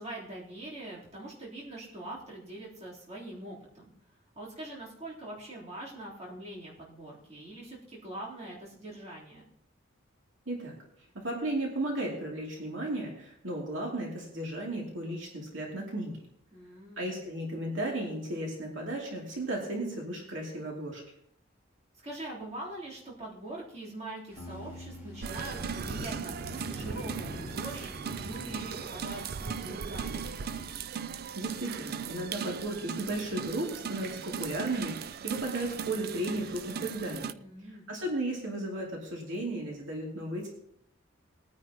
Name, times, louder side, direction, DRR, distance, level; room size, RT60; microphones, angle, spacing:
voice 1, 0.0-3.9 4.4-9.4 16.5-17.1 22.0-30.3 37.3-37.9, right 1 dB, 30° right, -6 dB, 3.5 m, -43 dB
voice 2, 11.1-16.2 17.0-21.0 31.3-37.3 37.9-40.5, right 1 dB, 65° right, -2 dB, 2.7 m, -34 dB
sound 1, 24.3-30.7, right 1 dB, 10° right, 3.3 m, -45 dB
sound 2, 24.4-29.0, equal, 20° left, 4.5 m, -49 dB
sound 3, 25.2-37.3, right 7 dB, 50° right, 0.4 m, -38 dB
20.0 x 9.7 x 2.9 m, 0.72 s
head